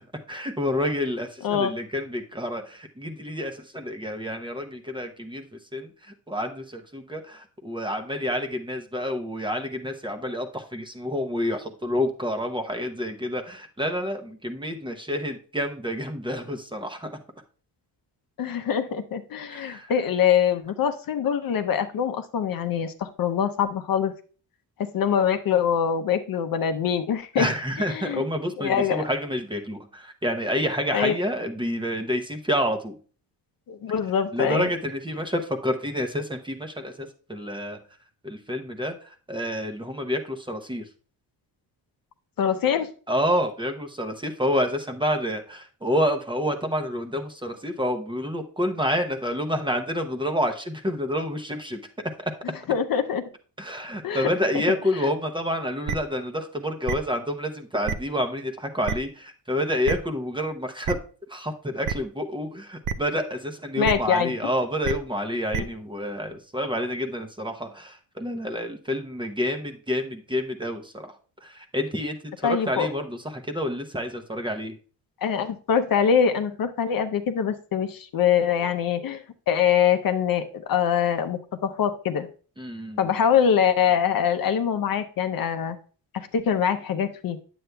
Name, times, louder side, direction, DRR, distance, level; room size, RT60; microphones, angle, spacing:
voice 1, 0.3-5.4 5.7-5.9 6.3-17.1 19.5-19.9 27.4-33.0 34.3-37.8 38.2-40.8 43.1-51.8 53.6-61.0 61.3-71.1 71.4-74.8 82.6-83.1, equal, 10° right, 5 dB, 0.7 m, -28 dB
voice 2, 1.4-1.8 18.4-24.1 24.8-27.5 27.9-28.2 28.6-29.0 30.9-31.2 33.7-34.7 42.4-42.9 52.7-53.2 54.0-54.3 54.5-54.6 54.9-55.1 63.8-64.5 72.4-72.9 75.2-82.3 83.0-85.8 86.1-87.4, left 8 dB, 50° left, 9 dB, 0.7 m, -24 dB
sound 1, 55.9-56.0 56.9-57.0 57.9-58.0 58.9-59.0 59.8-59.9 60.8-60.9 61.8-61.9 62.8-62.9 63.8-63.9 64.8-64.9 65.5-65.6, right 7 dB, 45° right, 0.5 m, -26 dB
9.4 x 7.9 x 2.2 m, 0.39 s
cardioid pair, 115°, 43 cm